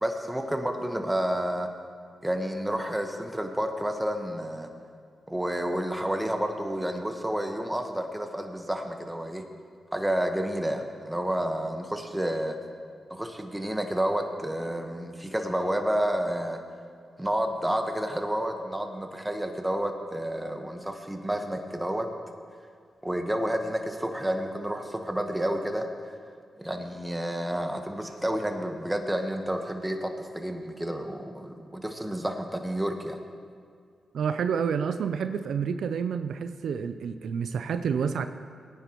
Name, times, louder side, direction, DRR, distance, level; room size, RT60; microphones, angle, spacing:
voice 1, 0.0-1.7 2.2-4.7 5.3-9.4 9.9-12.6 13.1-16.6 17.2-22.1 23.0-25.9 26.6-33.2, right 1 dB, 10° right, 4 dB, 1.2 m, -30 dB
voice 2, 34.1-38.3, right 6 dB, 80° right, 9 dB, 0.4 m, -29 dB
18.0 x 9.6 x 3.0 m, 2.1 s
cardioid pair, 55°, 0 cm